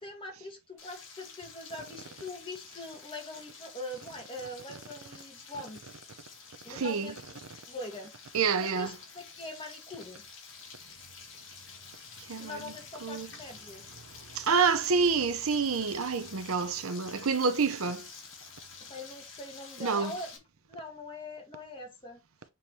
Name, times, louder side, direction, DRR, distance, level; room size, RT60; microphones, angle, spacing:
voice 1, 0.0-6.0 6.6-7.2 7.7-8.1 8.6-10.2 12.4-13.9 18.9-20.3 20.7-22.2, left 1 dB, 25° left, 1.7 m, -42 dB
Frying (food), 0.8-20.4, left 5 dB, 60° left, 2.2 m, -49 dB
voice 2, 6.7-7.1 8.3-8.9 12.3-12.7 13.0-13.3 14.3-18.1 19.8-20.1, right 5 dB, 80° right, 0.8 m, -28 dB
7.2 x 3.1 x 4.3 m
head